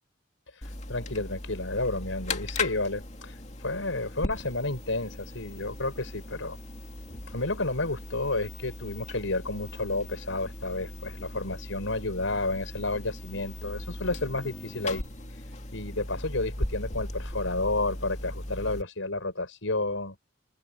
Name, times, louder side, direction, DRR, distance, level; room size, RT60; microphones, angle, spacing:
sound 1, 0.6-18.8, left 2 dB, 35° left, 2.4 m, -38 dB
voice 1, 0.9-3.4 3.6-6.6 7.3-15.0 15.7-20.2, left 2 dB, 80° left, 5.4 m, -31 dB
head